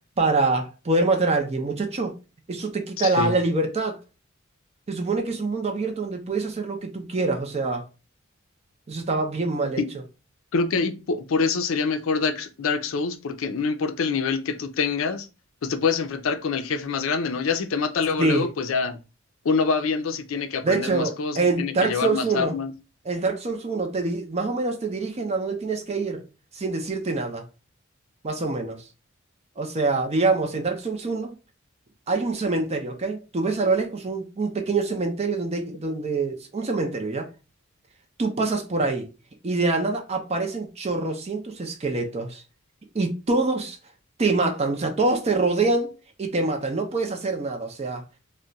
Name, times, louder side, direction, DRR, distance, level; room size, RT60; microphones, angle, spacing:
voice 1, 0.2-2.1 2.5-4.0 4.9-7.8 8.9-9.8 18.2-18.5 20.6-22.6 23.0-26.2 26.5-27.5 28.2-28.8 29.6-31.3 32.1-37.3 38.2-39.1 39.4-42.4 42.9-43.8 44.2-48.0, right 3 dB, 30° right, 0.5 m, -25 dB
voice 2, 3.0-3.3 9.8-9.9 10.5-15.3 15.6-19.0 19.5-22.7, left 5 dB, 70° left, 0.4 m, -25 dB
2.3 x 2.1 x 3.9 m
head